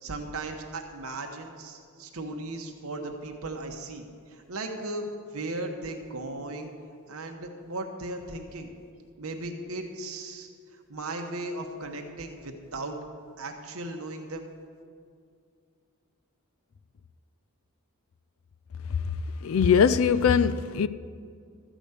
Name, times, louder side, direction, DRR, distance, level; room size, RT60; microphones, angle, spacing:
voice 1, 0.0-6.7 7.1-8.7 9.2-10.5 10.9-13.0 13.4-14.5, right 2 dB, 70° right, 1.1 m, -36 dB
voice 2, 19.4-20.9, left 7 dB, 65° left, 0.4 m, -21 dB
13.0 x 5.1 x 8.2 m
head